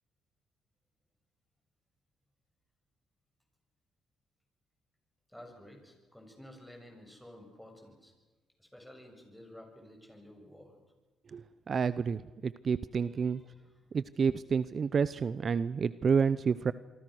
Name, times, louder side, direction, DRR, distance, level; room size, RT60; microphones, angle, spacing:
voice 1, 5.3-8.1 8.6-10.8 13.2-13.6, left 1 dB, 5° left, 3 dB, 7.1 m, -52 dB
voice 2, 11.3-13.4 13.9-16.7, right 6 dB, 45° right, 16 dB, 0.7 m, -29 dB
26.5 x 24.0 x 6.4 m, 1.3 s
cardioid pair, 90°, 0 cm